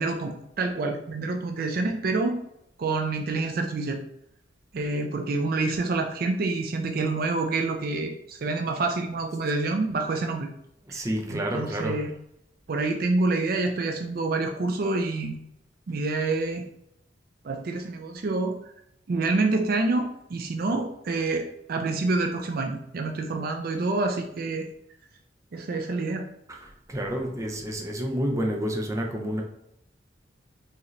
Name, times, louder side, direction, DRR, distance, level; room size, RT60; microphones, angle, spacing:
voice 1, 0.0-2.4 2.8-4.0 4.7-10.5 10.9-11.0 11.3-12.1 12.7-15.4 15.9-16.6 17.4-18.5 19.1-24.7 25.5-26.3, right 3 dB, 55° right, 4 dB, 0.4 m, -27 dB
voice 2, 10.9-12.0 26.5-26.6 26.9-29.4, equal, 20° right, 1 dB, 0.6 m, -29 dB
4.7 x 2.9 x 3.2 m, 0.78 s
head